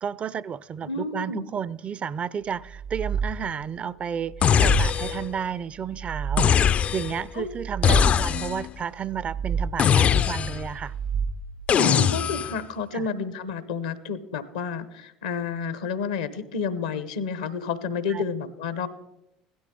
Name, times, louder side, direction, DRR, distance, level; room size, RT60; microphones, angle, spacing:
voice 1, 0.0-6.6 6.9-10.9 12.9-13.1 18.1-18.2, right 7 dB, 40° right, 0.4 m, -32 dB
voice 2, 0.8-1.5 7.3-7.5 7.8-8.0 11.8-18.9, left 5 dB, 80° left, 0.9 m, -30 dB
sound 1, 2.6-3.7 4.2-5.3 5.8-6.9 7.4-8.5 9.0-10.1 10.6-11.7, right 6 dB, 75° right, 1.0 m, -31 dB
sound 2, 4.4-5.3 6.4-7.2 7.8-8.7 9.8-10.7 11.7-12.6, left 8 dB, 40° left, 0.3 m, -21 dB
16.5 x 12.5 x 3.8 m
hypercardioid pair, 65°, 3 cm